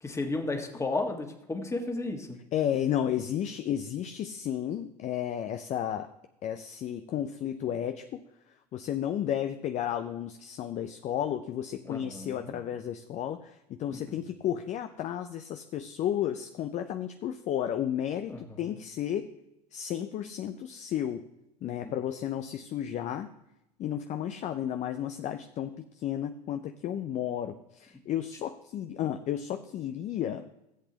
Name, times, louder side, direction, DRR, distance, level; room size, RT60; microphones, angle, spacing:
voice 1, 0.0-2.4 11.8-12.6 13.9-14.2 18.3-18.6 21.8-22.0, left 2 dB, 15° left, 3 dB, 1.6 m, -34 dB
voice 2, 2.5-6.1 6.4-8.2 8.7-19.3 19.7-21.3 21.6-23.3 23.8-30.5, left 10 dB, 35° left, 8 dB, 0.6 m, -33 dB
17.0 x 8.0 x 2.9 m, 0.85 s
figure-of-eight pair, 75°, 21 cm